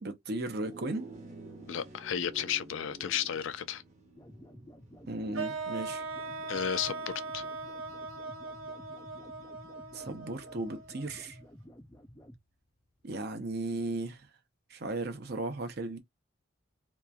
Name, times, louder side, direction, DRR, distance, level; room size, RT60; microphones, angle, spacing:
voice 1, 0.0-1.1 5.1-6.0 9.9-11.4 13.0-14.2 14.7-16.0, right 2 dB, 50° right, 0.7 m, -36 dB
sound 1, 0.6-10.2, right 2 dB, 35° right, 1.1 m, -52 dB
voice 2, 1.7-3.8 6.5-7.4, left 9 dB, 70° left, 0.4 m, -33 dB
sound 2, 4.1-12.4, equal, 15° left, 0.5 m, -53 dB
sound 3, 5.3-11.4, right 3 dB, 85° right, 0.8 m, -40 dB
2.9 x 2.5 x 2.3 m
head